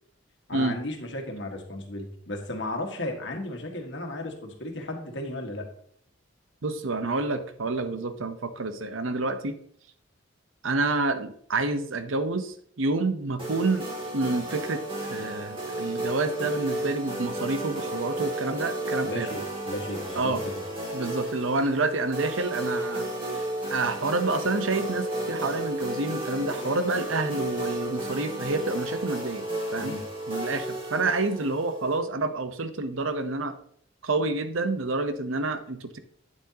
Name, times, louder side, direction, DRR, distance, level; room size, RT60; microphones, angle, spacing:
voice 1, 0.5-5.7 19.0-20.3 29.8-30.0, left 1 dB, 65° left, 3 dB, 1.6 m, -34 dB
voice 2, 6.6-9.6 10.6-13.9 14.1-14.8 15.1-19.3 20.1-20.4 20.9-23.1 23.3-23.4 23.7-29.4 29.7-30.0 30.3-33.5 34.0-36.0, right 3 dB, 85° right, 10 dB, 0.8 m, -28 dB
sound 1, 13.4-32.0, right 1 dB, 25° right, 2.5 m, -33 dB
8.9 x 7.7 x 2.8 m, 0.62 s
head